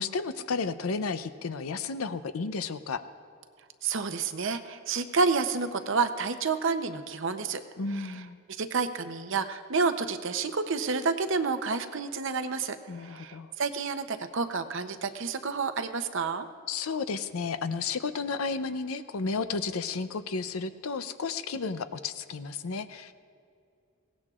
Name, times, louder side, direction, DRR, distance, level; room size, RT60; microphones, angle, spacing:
voice 1, 0.0-3.0 7.8-8.4 12.9-13.5 16.7-23.1, left 4 dB, 90° left, 11 dB, 0.6 m, -32 dB
voice 2, 3.8-7.6 7.9-8.2 8.6-16.5, right 4 dB, 60° right, 9 dB, 0.7 m, -29 dB
21.0 x 17.5 x 2.4 m, 2.4 s
head